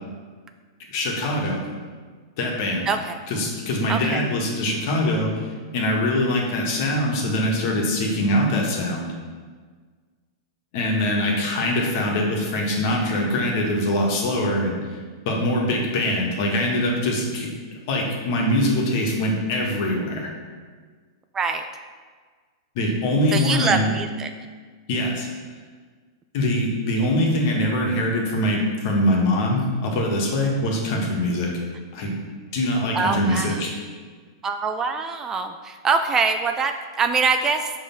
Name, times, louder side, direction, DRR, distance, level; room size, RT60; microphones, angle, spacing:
voice 1, 0.9-1.6 2.4-2.9 3.3-5.3 5.7-9.1 10.7-15.0 15.2-20.3 22.7-23.9 24.9-25.3 26.3-31.5 31.9-32.1 32.5-33.7, left 1 dB, 55° left, -1 dB, 1.4 m, -23 dB
voice 2, 2.9-3.2 3.9-4.2 21.3-21.7 23.3-24.3 32.9-33.6 34.4-37.7, right 5 dB, 20° right, 7 dB, 0.3 m, -24 dB
5.2 x 3.3 x 5.6 m, 1.5 s
hypercardioid pair, 130°, 2 cm